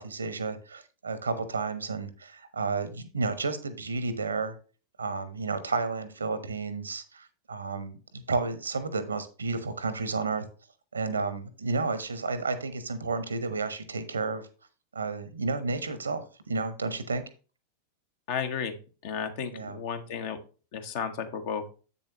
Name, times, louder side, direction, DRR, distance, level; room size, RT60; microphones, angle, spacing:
voice 1, 0.0-4.5 5.0-10.4 10.9-14.5 14.9-17.2 19.5-19.8, right 4 dB, 75° right, 13 dB, 1.0 m, -32 dB
voice 2, 18.3-18.8 19.0-20.4 20.7-21.7, left 7 dB, 50° left, 7 dB, 1.2 m, -33 dB
8.1 x 7.0 x 3.0 m, 0.35 s
figure-of-eight pair, 90°, 0 cm